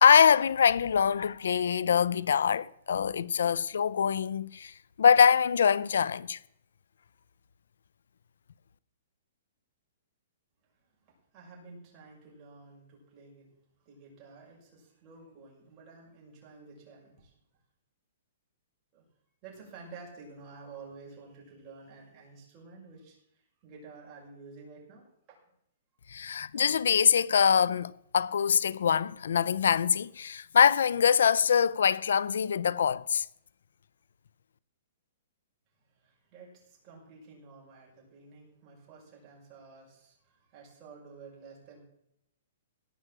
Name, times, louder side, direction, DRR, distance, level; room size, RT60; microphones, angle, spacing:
voice 1, 0.0-4.7 5.0-6.4 26.1-33.3, left 7 dB, 85° left, 0.6 m, -24 dB
voice 2, 10.6-13.5 13.8-17.4 18.9-19.0 19.4-25.4 35.8-41.8, right 4 dB, 25° right, 6.1 m, -51 dB
17.0 x 6.2 x 7.5 m
hypercardioid pair, 155°, 0 cm